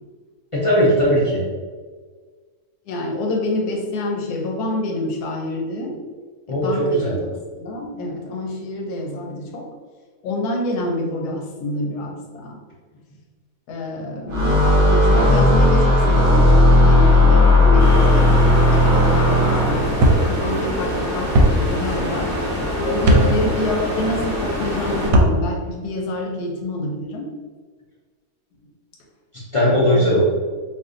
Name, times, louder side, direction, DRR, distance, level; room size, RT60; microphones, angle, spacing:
voice 1, 0.5-1.4 6.5-7.2 17.7-18.1 23.1-23.3 29.5-30.2, equal, 55° left, -7 dB, 0.3 m, -19 dB
voice 2, 2.9-6.0 6.5-7.2 7.6-9.7 10.2-12.6 13.7-22.4 22.8-27.3 29.9-30.2, left 1 dB, 85° left, 1 dB, 1.2 m, -27 dB
sound 1, 14.3-20.0, left 1 dB, 50° right, 0.7 m, -14 dB
sound 2, 17.8-25.1, equal, 15° left, 1.0 m, -25 dB
sound 3, 20.0-20.2 21.3-21.5 23.0-23.2 25.0-25.3, right 1 dB, 70° right, 0.9 m, -14 dB
2.6 x 2.6 x 3.6 m, 1.5 s
omnidirectional pair, 1.6 m